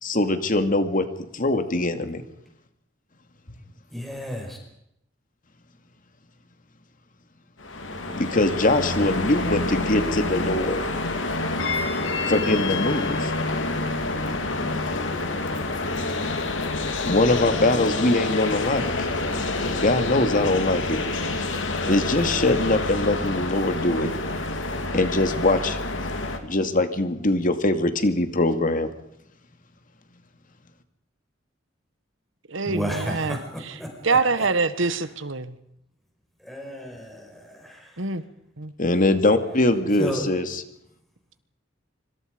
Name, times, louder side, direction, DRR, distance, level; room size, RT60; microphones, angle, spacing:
voice 1, 0.0-1.1 1.3-2.2 8.2-10.8 12.3-13.3 17.1-19.1 19.6-21.0 21.8-24.1 24.9-25.8 26.4-28.9 38.8-40.6, left 2 dB, 45° left, 2.3 m, -22 dB
voice 2, 3.9-4.6 32.6-34.5 34.8-35.0 36.4-38.0 40.0-40.2, equal, ahead, 5.1 m, -33 dB
sound 1, 7.6-26.4, left 2 dB, 75° left, 2.9 m, -27 dB
voice 3, 32.5-33.4 33.7-33.8 34.0-35.5 38.0-38.2 38.6-38.7, right 4 dB, 85° right, 1.6 m, -25 dB
25.5 x 25.5 x 5.3 m
head